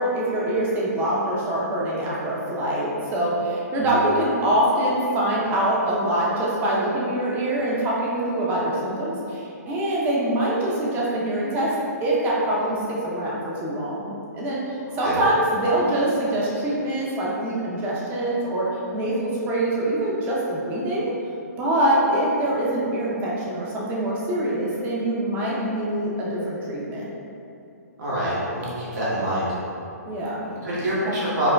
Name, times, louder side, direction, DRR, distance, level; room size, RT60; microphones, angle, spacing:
voice 1, 0.0-11.7 12.0-18.7 18.9-21.1 21.6-27.0 30.1-30.5, right 1 dB, 20° right, -5 dB, 0.6 m, -24 dB
voice 2, 28.0-29.5 30.6-31.5, equal, 75° right, -10 dB, 1.5 m, -25 dB
4.7 x 2.1 x 2.2 m, 2.7 s
hypercardioid pair, 140°, 9 cm